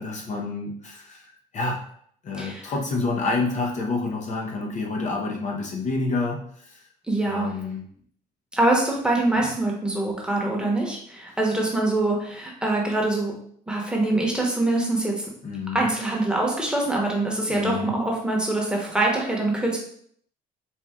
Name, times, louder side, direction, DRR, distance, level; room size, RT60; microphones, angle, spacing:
voice 1, 0.0-1.8 2.2-6.8 7.3-7.9 9.4-9.5 15.4-15.9 17.5-18.0, left 3 dB, 45° left, 0 dB, 0.7 m, -28 dB
voice 2, 7.1-7.5 8.5-13.3 13.7-15.3 15.7-19.8, right 2 dB, 5° right, -2 dB, 1.0 m, -24 dB
4.3 x 2.3 x 3.6 m, 0.63 s
cardioid pair, 110°, 17 cm